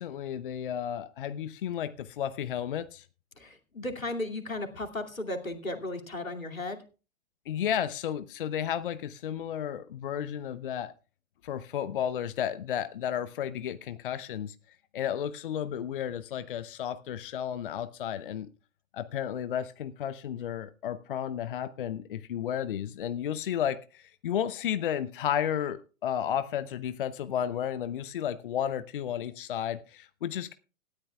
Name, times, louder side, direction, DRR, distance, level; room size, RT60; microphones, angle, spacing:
voice 1, 0.0-3.1 7.5-10.9 11.4-14.6 14.9-18.5 18.9-30.5, left 9 dB, 40° left, 13 dB, 0.7 m, -33 dB
voice 2, 3.4-6.8, left 2 dB, 80° left, 3 dB, 2.6 m, -35 dB
18.5 x 13.0 x 2.3 m, 0.34 s
figure-of-eight pair, 120°, 40 cm